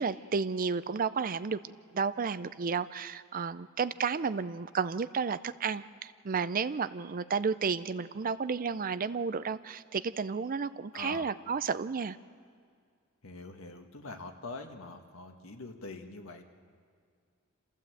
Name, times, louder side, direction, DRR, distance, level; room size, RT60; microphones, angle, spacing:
voice 1, 0.0-1.6 1.9-12.2, right 5 dB, 40° right, 15 dB, 0.5 m, -32 dB
voice 2, 10.9-11.3 13.2-16.4, left 3 dB, 75° left, 5 dB, 1.6 m, -44 dB
27.5 x 14.5 x 7.8 m, 2.2 s
head